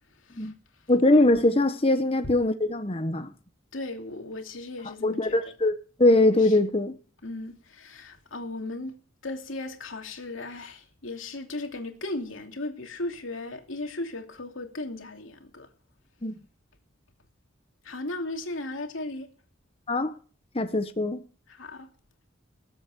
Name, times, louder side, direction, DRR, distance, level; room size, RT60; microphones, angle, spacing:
voice 1, 0.9-3.3 5.0-7.0 16.2-16.3 19.9-20.1 20.5-21.2, left 2 dB, 30° left, 1.2 m, -22 dB
voice 2, 3.7-5.4 6.4-6.6 7.2-15.7 17.8-19.3 21.5-21.9, left 2 dB, 85° left, 2.8 m, -36 dB
20.5 x 8.1 x 6.1 m
head